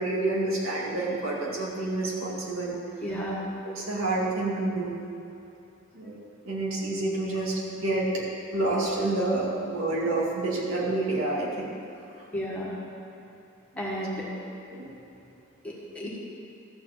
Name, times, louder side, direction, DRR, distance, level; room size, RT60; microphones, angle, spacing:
voice 1, 0.0-2.8 3.6-5.0 5.9-6.2 6.4-8.2 8.5-11.8 14.7-14.9, right 2 dB, 85° right, -4 dB, 2.2 m, -28 dB
voice 2, 3.0-3.4 12.3-12.7 13.7-14.3 15.6-16.1, equal, 5° left, -6 dB, 1.7 m, -32 dB
14.0 x 4.8 x 7.4 m, 2.7 s
head